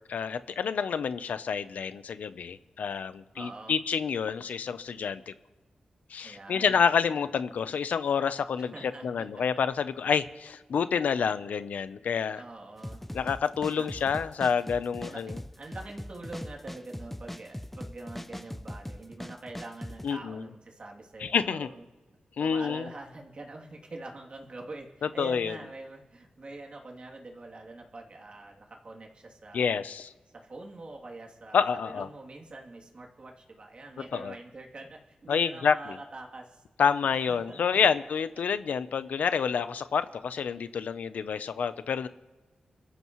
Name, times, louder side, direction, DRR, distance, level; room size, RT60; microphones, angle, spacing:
voice 1, 0.1-5.3 6.1-12.4 13.1-15.4 20.0-20.4 21.2-21.7 22.4-22.9 25.2-25.6 29.5-30.1 31.5-32.1 34.1-34.3 35.3-35.9 36.8-42.1, left 6 dB, 85° left, 12 dB, 0.7 m, -28 dB
voice 2, 3.3-3.8 6.2-6.8 8.6-9.4 12.3-13.0 13.7-13.9 15.0-21.8 22.4-29.8 30.3-36.6 37.1-37.8, right 2 dB, 45° right, 0 dB, 2.9 m, -45 dB
sound 1, 12.8-20.1, left 1 dB, 5° left, 0.6 m, -40 dB
28.5 x 14.0 x 3.1 m, 1.2 s
wide cardioid pair, 90°, 3 cm